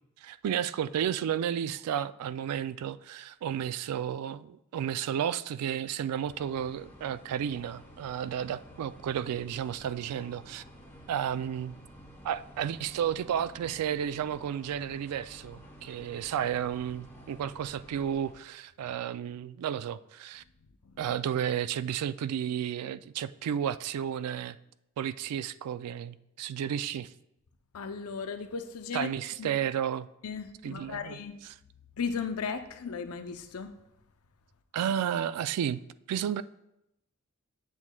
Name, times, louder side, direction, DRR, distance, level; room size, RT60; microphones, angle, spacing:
voice 1, 0.2-10.6 11.1-11.8 12.2-20.4 21.0-24.6 25.0-27.1 28.9-30.1 30.6-31.2 34.7-35.8 36.1-36.4, right 9 dB, 90° right, 0.3 m, -32 dB
sound 1, 6.2-18.3, equal, 10° left, 1.0 m, -51 dB
voice 2, 27.7-29.1 29.4-29.6 30.2-31.4 32.0-33.7, left 5 dB, 75° left, 0.6 m, -36 dB
8.1 x 7.2 x 2.2 m
head